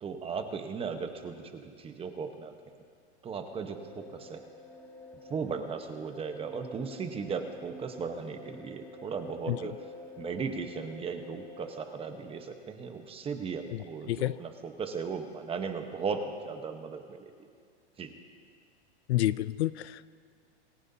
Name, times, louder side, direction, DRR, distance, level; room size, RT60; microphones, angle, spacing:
voice 1, 0.0-2.5 3.2-4.5 5.3-9.7 10.2-17.5 18.0-18.1, right 5 dB, 15° right, 6 dB, 1.1 m, -37 dB
sound 1, 3.5-12.4, left 2 dB, 5° left, 1.5 m, -49 dB
voice 2, 19.1-20.1, left 15 dB, 70° left, 17 dB, 0.5 m, -28 dB
27.5 x 16.0 x 2.8 m, 2.2 s
hypercardioid pair, 135°, 34 cm